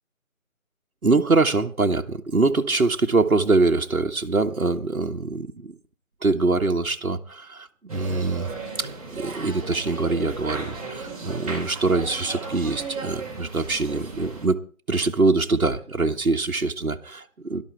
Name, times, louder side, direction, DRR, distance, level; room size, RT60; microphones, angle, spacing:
voice 1, 1.0-5.7 6.2-8.5 8.8-14.6 14.9-17.2 17.5-17.6, right 3 dB, 80° right, 1.6 m, -23 dB
sound 1, 7.9-14.5, right 3 dB, 25° right, 4.5 m, -35 dB
17.0 x 12.5 x 4.6 m
figure-of-eight pair, 165°, 42 cm